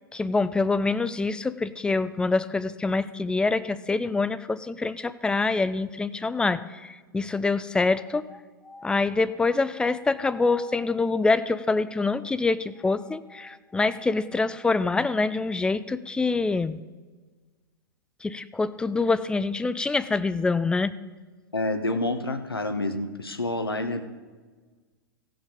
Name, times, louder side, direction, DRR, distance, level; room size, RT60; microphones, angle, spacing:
voice 1, 0.1-8.4 8.7-16.8 18.2-20.9, left 3 dB, 5° left, 15 dB, 0.4 m, -25 dB
voice 2, 21.5-24.0, left 2 dB, 90° left, 7 dB, 1.1 m, -28 dB
17.0 x 5.7 x 5.3 m, 1.4 s
figure-of-eight pair, 100°, 12 cm